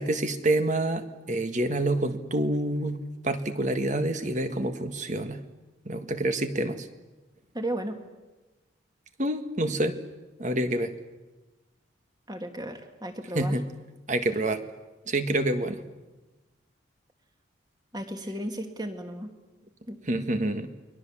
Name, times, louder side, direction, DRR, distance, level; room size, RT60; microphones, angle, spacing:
voice 1, 0.0-5.4 5.8-6.9 9.2-10.0 10.4-10.9 13.3-13.7 14.1-14.6 15.1-15.8 20.0-20.7, right 1 dB, 40° right, 9 dB, 1.7 m, -27 dB
voice 2, 7.5-8.0 12.3-13.6 17.9-19.3 19.9-20.0, right 1 dB, 20° right, 6 dB, 2.3 m, -34 dB
29.5 x 22.0 x 7.4 m, 1.1 s
head